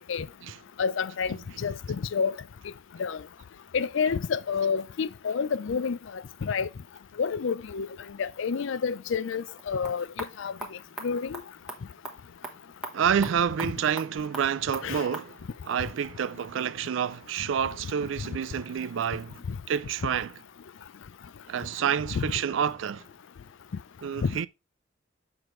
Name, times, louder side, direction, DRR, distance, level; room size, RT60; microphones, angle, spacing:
voice 1, 0.8-2.4 3.0-3.2 3.7-6.7 7.2-7.9 8.2-10.5 11.0-11.4 14.8-15.1 22.1-22.3 24.2-24.4, left 6 dB, 65° left, 0.4 m, -29 dB
sound 1, 9.5-15.3, right 1 dB, 5° right, 1.0 m, -42 dB
voice 2, 12.9-15.4 15.7-19.4 19.7-20.3 21.5-23.1 24.0-24.5, right 8 dB, 65° right, 0.4 m, -28 dB
6.9 x 5.9 x 3.1 m
head